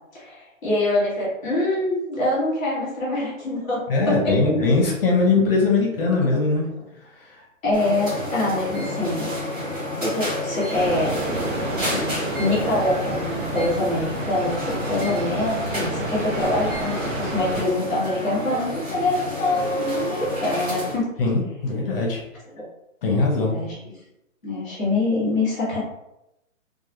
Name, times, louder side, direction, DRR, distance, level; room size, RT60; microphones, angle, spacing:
voice 1, 0.1-4.7 6.7-6.8 7.6-11.2 11.9-21.1 22.6-22.7 23.5-23.7 24.4-25.8, left 2 dB, 5° left, -16 dB, 0.5 m, -25 dB
voice 2, 3.9-6.7 21.2-22.2 23.0-23.5, left 3 dB, 45° left, -1 dB, 0.7 m, -20 dB
sound 1, 7.7-21.0, left 1 dB, 30° right, 1.1 m, -30 dB
sound 2, 10.7-17.6, right 2 dB, 65° right, 0.9 m, -30 dB
2.2 x 2.2 x 2.9 m, 0.87 s
hypercardioid pair, 155°, 41 cm